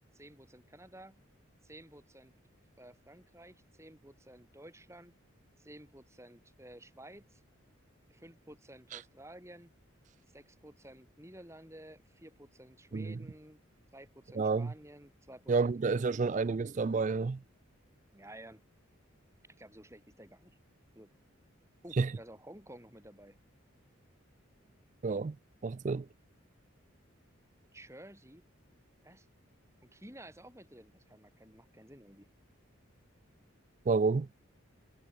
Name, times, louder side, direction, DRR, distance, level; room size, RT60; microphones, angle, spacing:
voice 1, 0.1-1.2 1.6-2.3 2.8-5.1 5.6-7.4 8.1-9.7 10.3-13.6 13.9-16.4 18.1-18.6 19.5-20.6 20.9-21.1 21.8-23.4 27.7-28.4 29.0-29.3 29.8-32.3, right 1 dB, 15° right, 6.8 m, -53 dB
voice 2, 14.4-14.7 15.5-17.4 22.0-22.1 25.0-25.4 25.6-26.1 33.9-34.3, right 4 dB, 35° right, 0.3 m, -29 dB
head